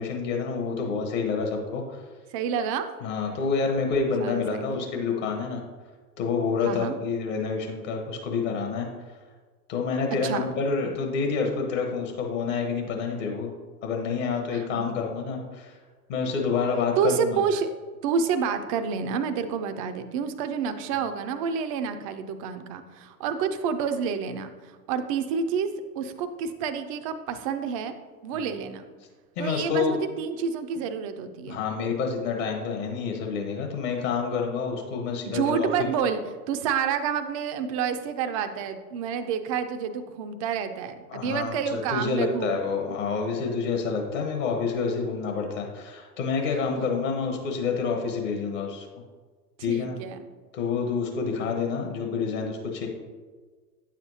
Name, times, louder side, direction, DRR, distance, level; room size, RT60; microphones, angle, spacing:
voice 1, 0.0-2.0 3.0-5.6 6.2-8.9 9.7-13.5 13.8-15.7 16.1-17.4 29.4-30.0 31.5-35.7 41.1-48.9 49.6-50.0 50.5-52.9, left 5 dB, 50° left, 2 dB, 1.3 m, -28 dB
voice 2, 2.3-2.9 4.2-4.9 6.6-6.9 10.2-10.5 14.5-14.9 17.0-17.7 18.0-25.7 26.0-27.9 28.2-28.9 29.4-31.6 35.3-36.2 36.5-42.6 46.7-46.8 49.7-50.2, right 6 dB, 25° right, 9 dB, 0.3 m, -29 dB
9.2 x 7.3 x 2.7 m, 1.4 s
figure-of-eight pair, 90°, 48 cm